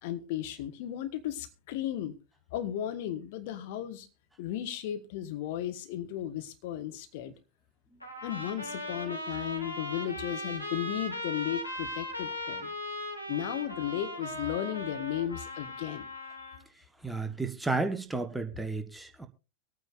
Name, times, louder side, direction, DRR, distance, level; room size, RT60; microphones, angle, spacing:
voice 1, 0.0-2.1 2.5-4.1 4.4-7.3 8.2-12.7 13.3-16.1 16.4-16.5, left 11 dB, 50° left, 1.3 m, -35 dB
Trumpet, 8.0-16.7, left 1 dB, 85° left, 1.9 m, -38 dB
voice 2, 17.0-19.3, right 3 dB, 5° right, 1.2 m, -32 dB
24.0 x 9.1 x 2.6 m
figure-of-eight pair, 90°, 0 cm